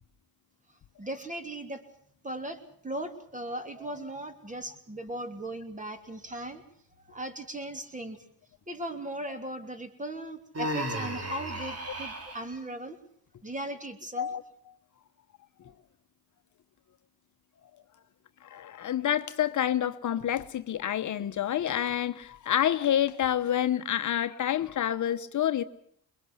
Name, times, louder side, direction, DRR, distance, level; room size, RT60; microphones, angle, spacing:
voice 1, 1.0-1.8 2.2-6.6 7.1-8.2 8.7-13.0 13.4-14.3, right 1 dB, 20° right, 3.0 m, -38 dB
Human voice, 10.5-12.4, right 1 dB, 40° right, 3.6 m, -34 dB
voice 2, 18.5-25.6, left 10 dB, 55° left, 1.0 m, -28 dB
22.0 x 22.0 x 7.9 m
cardioid pair, 85°, 36 cm